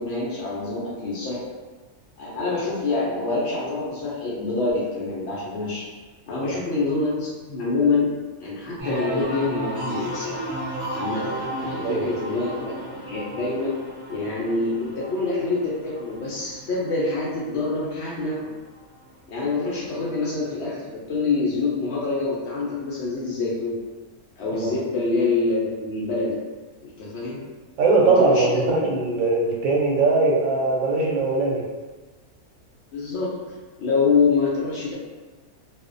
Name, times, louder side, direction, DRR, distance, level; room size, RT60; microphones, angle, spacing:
voice 1, 0.0-1.4 2.2-5.8 6.3-8.1 8.4-10.4 10.9-12.8 13.0-13.7 14.1-18.5 19.3-23.8 24.4-26.4 26.8-27.4 28.0-28.8 32.9-33.3 33.8-34.9, left 3 dB, 65° left, -6 dB, 0.7 m, -26 dB
sound 1, 8.8-18.3 18.7-19.3, right 1 dB, 35° right, 1.0 m, -34 dB
voice 2, 27.8-31.6, right 3 dB, 70° right, -1 dB, 0.9 m, -20 dB
2.5 x 2.1 x 2.4 m, 1.3 s
omnidirectional pair, 1.6 m